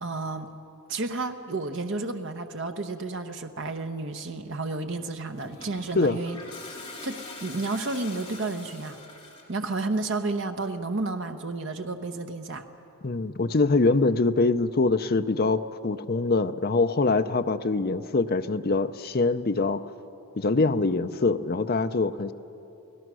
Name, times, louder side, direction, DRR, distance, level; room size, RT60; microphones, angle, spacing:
voice 1, 0.0-0.5 0.9-6.4 7.0-9.0 9.5-12.6, right 3 dB, 55° right, 6 dB, 0.9 m, -31 dB
Toilet flush, 5.3-9.6, left 3 dB, 20° left, 3.3 m, -43 dB
voice 2, 13.0-19.8 20.4-22.3, left 3 dB, 45° left, 9 dB, 0.6 m, -24 dB
29.5 x 17.5 x 6.2 m, 3.0 s
head